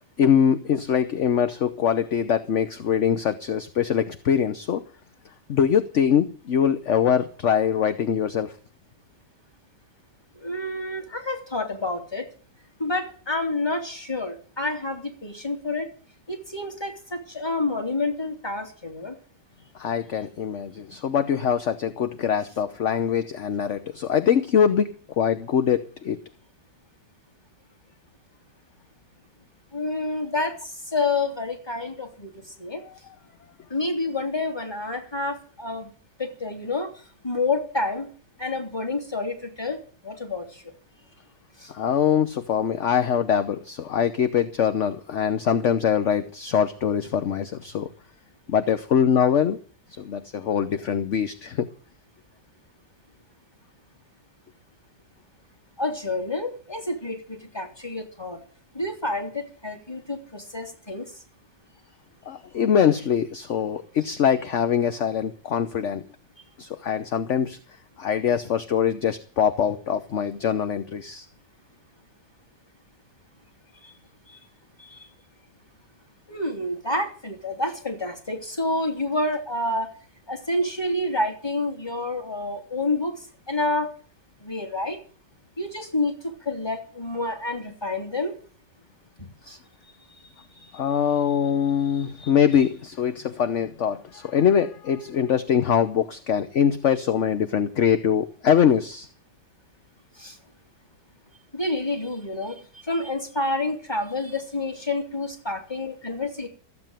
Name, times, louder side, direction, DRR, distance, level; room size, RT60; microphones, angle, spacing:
voice 1, 0.2-4.8 5.5-8.5 19.7-26.2 41.7-47.9 48.5-49.6 49.9-51.7 62.2-66.0 66.6-67.6 68.0-71.2 90.2-99.1, left 8 dB, 50° left, 10 dB, 1.0 m, -23 dB
voice 2, 10.3-12.3 12.8-15.9 16.3-19.2 29.7-32.8 33.7-35.9 36.2-38.1 38.4-40.7 41.6-41.7 55.8-58.4 58.7-61.2 73.8-73.9 74.3-74.4 74.8-75.1 76.3-79.9 80.3-83.9 84.4-85.0 85.6-88.4 89.2-89.6 100.2-100.4 101.5-106.5, left 2 dB, 15° left, 4 dB, 2.8 m, -29 dB
14.5 x 8.0 x 9.1 m, 0.41 s
omnidirectional pair, 1.9 m